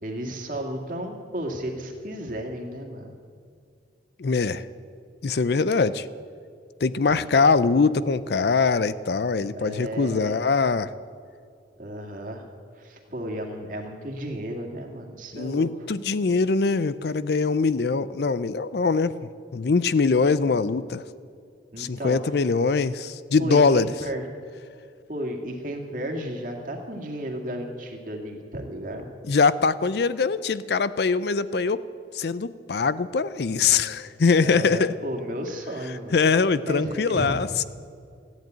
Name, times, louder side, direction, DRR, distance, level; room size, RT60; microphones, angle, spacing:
voice 1, 0.0-3.2 7.1-7.3 9.5-10.4 11.8-12.5 12.8-15.7 21.7-22.4 23.4-24.2 25.1-29.1 33.7-33.9 34.4-36.2 36.7-37.3, right 1 dB, 45° right, 2 dB, 2.1 m, -33 dB
voice 2, 4.2-4.6 5.2-6.1 6.8-10.9 15.3-19.1 19.5-21.0 21.8-23.9 29.3-31.8 32.1-34.9 36.1-37.6, left 4 dB, 60° left, 16 dB, 0.5 m, -22 dB
14.5 x 10.5 x 9.1 m, 2.3 s
head